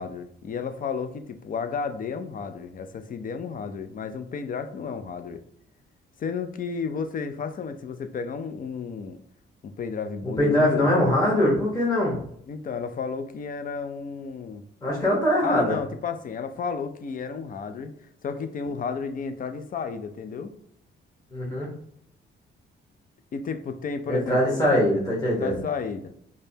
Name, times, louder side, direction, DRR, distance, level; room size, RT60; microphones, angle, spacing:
voice 1, 0.0-5.4 6.2-9.2 9.6-11.0 12.5-14.6 15.4-17.9 18.2-20.5 23.3-24.6 25.4-26.1, left 5 dB, 45° left, 9 dB, 0.5 m, -32 dB
voice 2, 10.2-12.2 14.8-15.8 21.3-21.7 24.1-25.6, left 1 dB, 20° left, -4 dB, 1.3 m, -22 dB
5.0 x 2.2 x 2.8 m, 0.68 s
cardioid pair, 90°, 20 cm